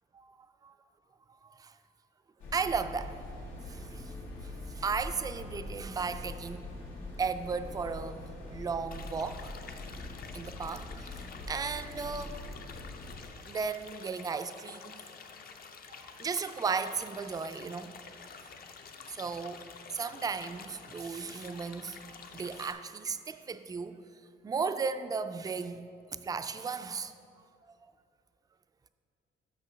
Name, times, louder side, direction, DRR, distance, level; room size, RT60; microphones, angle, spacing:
voice 1, 1.4-1.7 2.5-3.2 3.7-4.0 4.4-6.6 7.2-8.2 8.5-9.5 10.3-11.2 11.5-12.4 13.5-15.1 15.9-17.9 19.1-19.6 19.9-24.0 24.4-25.8 26.2-27.1, right 5 dB, 20° right, 10 dB, 0.3 m, -35 dB
sound 1, 2.4-13.3, left 2 dB, 85° left, 1.2 m, -43 dB
sound 2, 8.9-22.7, left 5 dB, 50° left, 0.6 m, -49 dB
6.2 x 5.6 x 6.1 m, 2.4 s
cardioid pair, 90°, 20 cm